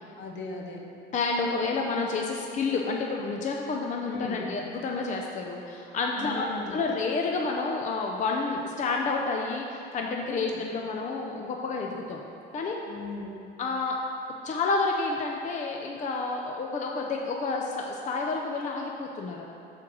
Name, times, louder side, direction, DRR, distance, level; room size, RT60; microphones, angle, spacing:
voice 1, 0.2-0.8 4.1-4.4 6.1-6.8 10.3-10.6 12.9-13.3, left 3 dB, 75° left, 0 dB, 1.1 m, -37 dB
voice 2, 1.1-12.2 12.5-12.8 13.6-13.9 14.4-19.4, left 3 dB, 40° left, 0 dB, 0.6 m, -29 dB
6.2 x 4.5 x 6.1 m, 2.8 s
cardioid pair, 125°, 19 cm